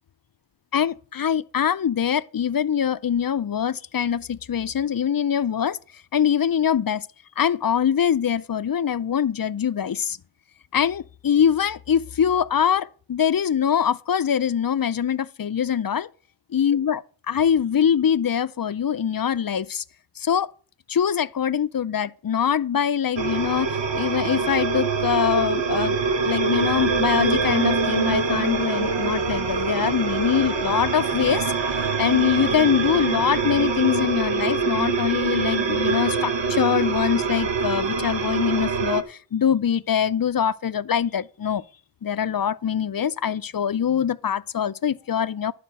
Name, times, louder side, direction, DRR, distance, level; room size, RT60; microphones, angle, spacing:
voice 1, 0.7-5.8 6.1-7.1 7.4-10.2 10.7-16.1 16.5-17.0 17.3-19.8 20.2-20.5 20.9-26.0 26.2-31.5 32.0-41.6 42.0-45.5, left 8 dB, 50° left, 0.5 m, -23 dB
sound 1, 23.2-39.0, right 4 dB, 75° right, 1.1 m, -24 dB
12.0 x 5.0 x 7.5 m
wide cardioid pair, 60°, 44 cm